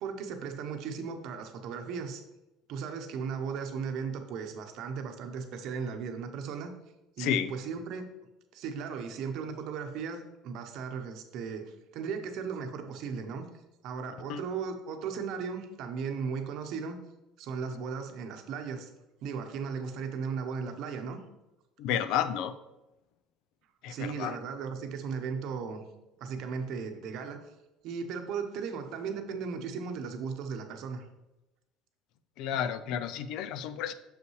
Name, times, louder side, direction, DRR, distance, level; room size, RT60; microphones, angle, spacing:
voice 1, 0.0-2.2 2.7-6.7 7.2-8.1 8.5-13.5 13.8-17.0 17.4-18.9 19.2-21.2 23.9-25.8 26.2-27.5 27.8-31.0, right 5 dB, 60° right, 6 dB, 0.8 m, -36 dB
voice 2, 7.2-7.5 14.3-14.4 21.8-22.6 23.8-24.4 32.4-33.9, left 9 dB, 60° left, 13 dB, 0.4 m, -31 dB
6.6 x 5.5 x 3.1 m, 0.95 s
cardioid pair, 145°, 0 cm